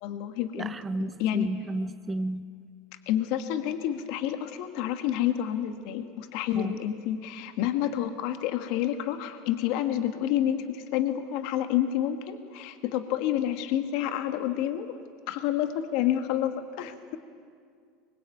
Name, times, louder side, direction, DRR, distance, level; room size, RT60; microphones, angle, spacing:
voice 1, 0.0-0.7 1.0-1.5 3.1-15.0 15.3-17.2, left 11 dB, 65° left, 9 dB, 1.6 m, -29 dB
voice 2, 0.6-2.4 6.5-6.8, right 2 dB, 20° right, 12 dB, 1.1 m, -33 dB
24.0 x 21.5 x 9.4 m, 2.2 s
supercardioid pair, 115°, 0 cm